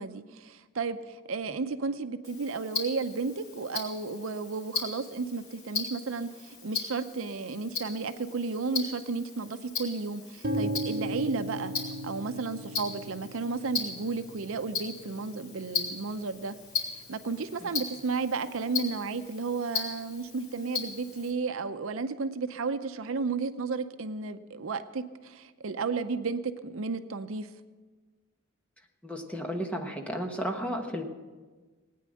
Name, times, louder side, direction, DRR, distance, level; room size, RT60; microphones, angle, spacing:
voice 1, 0.0-11.7 12.0-16.5 17.1-27.5, right 4 dB, 70° right, 10 dB, 0.6 m, -33 dB
Tick-tock, 2.2-21.3, left 5 dB, 85° left, 3.5 m, -38 dB
sound 1, 10.4-18.3, right 1 dB, 45° right, 1.3 m, -38 dB
voice 2, 29.0-31.0, equal, 5° left, 3 dB, 1.2 m, -33 dB
18.5 x 9.4 x 6.4 m, 1.4 s
head